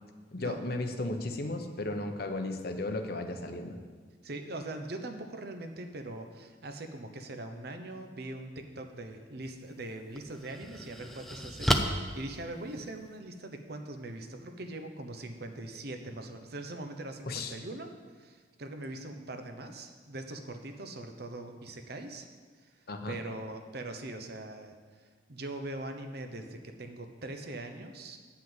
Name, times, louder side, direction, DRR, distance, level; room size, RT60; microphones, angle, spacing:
voice 1, 0.3-3.8 17.3-17.5 22.9-23.2, left 2 dB, 55° left, 6 dB, 0.9 m, -35 dB
voice 2, 4.2-17.9 18.1-22.3 22.6-22.7 23.1-24.7 25.0-28.2, right 2 dB, 60° right, 6 dB, 0.9 m, -41 dB
sound 1, 9.4-9.6 10.1-13.2, equal, ahead, 0.5 m, -32 dB
8.8 x 5.8 x 7.8 m, 1.5 s
head